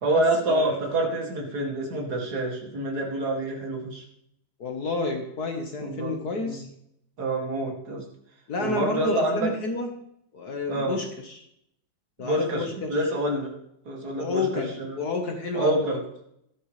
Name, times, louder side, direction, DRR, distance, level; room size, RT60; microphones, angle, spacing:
voice 1, 0.0-4.0 5.8-6.2 6.4-6.6 7.2-8.0 8.6-9.5 10.7-10.9 12.2-13.5 13.9-15.0 15.5-16.0, right 1 dB, 50° right, -1 dB, 2.9 m, -27 dB
voice 2, 4.6-6.7 8.5-9.9 10.3-11.5 12.2-13.0 14.2-15.9, left 3 dB, 55° left, 3 dB, 1.7 m, -30 dB
13.5 x 11.0 x 3.3 m, 0.75 s
omnidirectional pair, 2.2 m